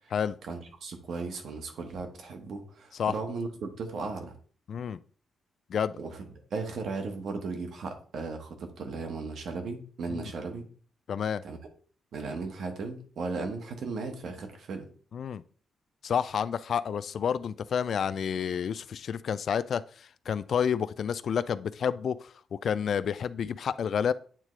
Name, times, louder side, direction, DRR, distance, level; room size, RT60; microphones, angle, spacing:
voice 1, 0.5-4.3 6.0-10.6 11.4-11.6 12.1-14.9, right 4 dB, 70° right, 5 dB, 1.2 m, -36 dB
voice 2, 4.7-5.0 5.7-5.9 10.1-10.3 11.1-11.4 15.1-15.4 16.0-19.8 20.3-24.1, left 7 dB, 60° left, 16 dB, 0.3 m, -29 dB
9.0 x 3.7 x 3.1 m, 0.44 s
cardioid pair, 120°, 0 cm